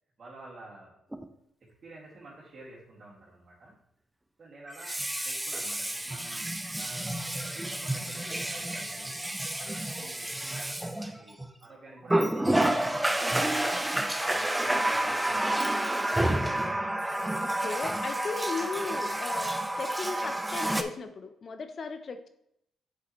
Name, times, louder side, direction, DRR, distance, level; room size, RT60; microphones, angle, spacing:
voice 1, 0.2-1.0 1.6-3.8 4.4-9.2 9.7-13.3 14.2-15.7, right 2 dB, 50° right, -7 dB, 2.4 m, -50 dB
Water tap faucet, 1.1-1.3 4.7-11.5 12.1-20.8, right 1 dB, 10° right, 0.7 m, -29 dB
voice 2, 17.4-22.3, left 4 dB, 50° left, 9 dB, 0.7 m, -37 dB
7.5 x 6.8 x 3.2 m, 0.76 s
supercardioid pair, 65°, 0 cm